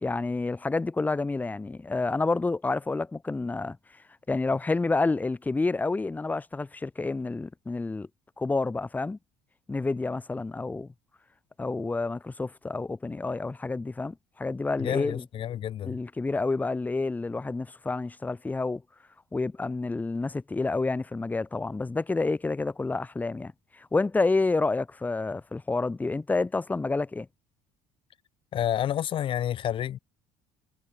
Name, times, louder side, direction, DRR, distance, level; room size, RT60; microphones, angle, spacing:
voice 1, 0.0-3.8 4.3-8.1 8.4-9.2 9.7-10.9 11.6-15.2 15.8-18.8 19.3-27.3, left 3 dB, 15° left, 1.3 m, -29 dB
voice 2, 14.8-16.0 28.5-30.0, left 11 dB, 45° left, 1.0 m, -29 dB
cardioid pair, 120°, 12 cm